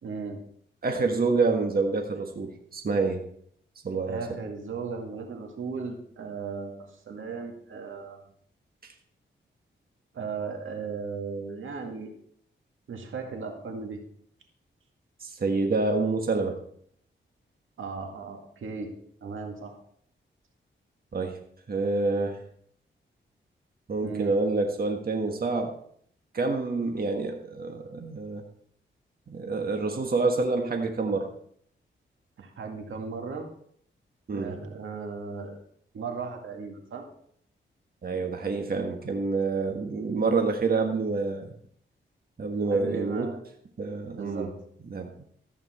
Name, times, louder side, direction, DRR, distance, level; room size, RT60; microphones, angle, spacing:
voice 1, 0.0-0.4 4.1-8.2 10.1-12.1 12.9-14.0 17.8-18.9 19.2-19.7 24.0-24.3 32.4-33.5 34.3-35.6 35.9-37.0 42.6-43.4 44.2-44.5, right 5 dB, 80° right, 3 dB, 2.1 m, -36 dB
voice 2, 0.8-3.2 3.8-4.2 8.8-8.9 15.2-16.6 21.1-21.4 21.7-22.4 23.9-25.7 26.3-28.4 29.3-31.3 34.3-34.6 38.0-41.5 42.4-43.3 43.8-44.5 44.9-45.1, right 3 dB, 50° right, 3 dB, 1.5 m, -27 dB
14.0 x 8.8 x 4.4 m, 0.64 s
cardioid pair, 85°, 20 cm